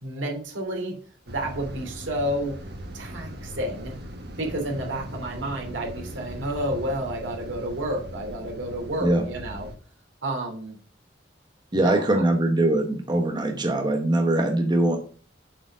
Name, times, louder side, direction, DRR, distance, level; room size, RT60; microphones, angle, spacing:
voice 1, 0.0-0.9 1.3-2.5 2.9-3.9 4.4-9.7 10.2-10.8 11.7-12.2, right 1 dB, 85° right, 1 dB, 2.8 m, -30 dB
sound 1, 1.3-9.7, equal, 60° right, 1.6 m, -39 dB
voice 2, 11.7-15.0, right 1 dB, 25° right, 3 dB, 1.1 m, -22 dB
7.4 x 5.0 x 6.2 m, 0.42 s
head